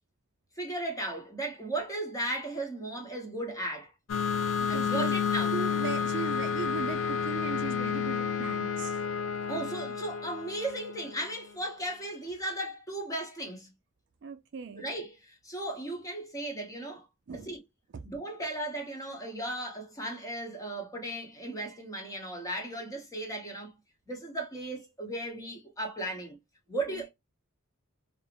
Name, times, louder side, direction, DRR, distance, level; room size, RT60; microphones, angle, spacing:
voice 1, 0.6-3.9 4.7-5.6 9.5-13.7 14.8-17.1 17.3-17.6 18.0-23.7 24.1-26.4 26.7-27.1, right 1 dB, 15° left, 0.8 m, -36 dB
sound 1, 4.1-11.4, left 7 dB, 70° left, 0.4 m, -31 dB
voice 2, 4.6-5.2 5.5-9.0 14.2-14.9 17.3-17.5 17.9-18.0 26.9-27.0, right 5 dB, 60° right, 0.4 m, -38 dB
2.5 x 2.0 x 2.8 m
head